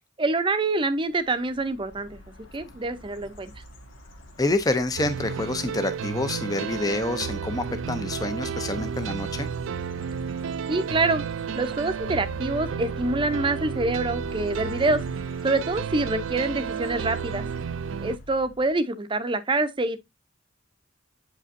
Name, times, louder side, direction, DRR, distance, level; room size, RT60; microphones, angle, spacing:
voice 1, 0.2-2.2 2.5-3.5 10.7-11.2 11.6-15.0 15.4-17.5 18.0-20.0, right 2 dB, 25° right, 0.6 m, -26 dB
sound 1, 1.1-18.7, left 1 dB, 90° left, 1.5 m, -44 dB
voice 2, 4.4-9.5, left 2 dB, 20° left, 0.5 m, -27 dB
sound 2, 5.0-18.2, right 7 dB, 80° right, 0.4 m, -32 dB
8.1 x 5.0 x 2.6 m
head